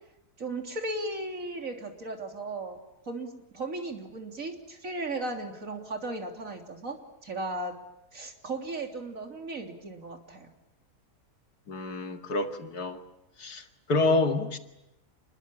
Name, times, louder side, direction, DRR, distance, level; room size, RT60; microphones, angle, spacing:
voice 1, 0.4-2.8 3.1-7.0 7.2-7.7 8.1-10.5, right 2 dB, 60° right, 3 dB, 3.7 m, -36 dB
voice 2, 11.7-13.0 13.4-14.6, left 2 dB, 90° left, 6 dB, 2.6 m, -28 dB
28.5 x 21.5 x 8.8 m, 0.89 s
omnidirectional pair, 1.6 m